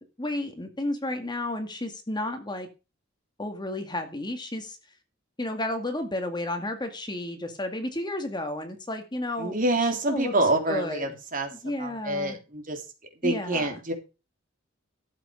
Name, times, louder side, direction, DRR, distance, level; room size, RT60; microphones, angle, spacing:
voice 1, 0.2-2.7 3.4-4.8 5.4-9.5 9.8-10.3 10.7-11.2 11.5-12.4 13.2-13.8, left 1 dB, 20° left, 6 dB, 2.0 m, -32 dB
voice 2, 9.4-11.5 11.8-12.8 13.2-13.9, right 2 dB, 45° right, 4 dB, 3.3 m, -27 dB
12.5 x 8.0 x 5.2 m, 0.30 s
head